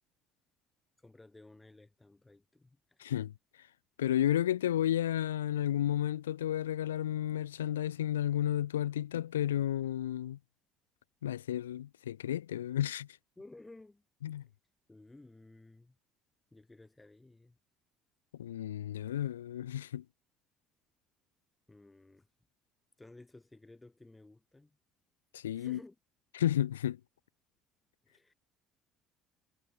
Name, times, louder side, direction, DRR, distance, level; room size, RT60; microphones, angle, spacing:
voice 1, 1.0-3.0 13.4-14.0 14.9-16.0 16.5-17.6 21.7-22.3 23.0-24.8 25.5-26.0 28.0-28.3, left 2 dB, 15° left, 7.9 m, -55 dB
voice 2, 3.0-3.3 4.0-10.4 11.2-13.1 14.2-14.4 18.4-20.0 25.3-25.8 26.3-27.0, left 11 dB, 75° left, 0.3 m, -32 dB
figure-of-eight pair, 55°, 0 cm